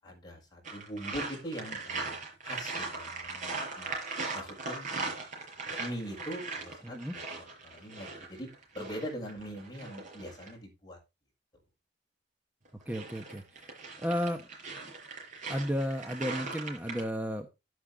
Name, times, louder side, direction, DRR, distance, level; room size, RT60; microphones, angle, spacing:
voice 1, 0.0-3.9 4.3-5.1 5.8-7.4 7.7-8.5 8.7-11.0, equal, 25° left, 0 dB, 6.8 m, -42 dB
sound 1, 0.6-10.5 12.7-17.0, right 3 dB, 45° right, 6.2 m, -39 dB
voice 2, 6.8-7.1 12.9-14.4 15.5-17.5, equal, 10° right, 4 dB, 1.2 m, -33 dB
12.0 x 10.0 x 3.7 m, 0.27 s
head